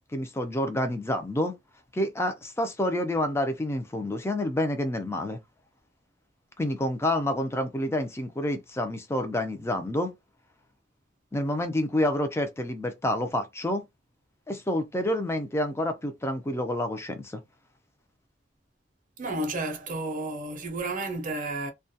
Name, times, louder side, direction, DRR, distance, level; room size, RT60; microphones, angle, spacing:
voice 1, 0.1-1.5 1.9-5.4 6.6-10.1 11.3-13.8 14.5-17.4, left 1 dB, 15° left, 0.5 m, -28 dB
voice 2, 19.2-21.7, right 2 dB, 45° right, 0.6 m, -32 dB
2.3 x 2.2 x 2.7 m
head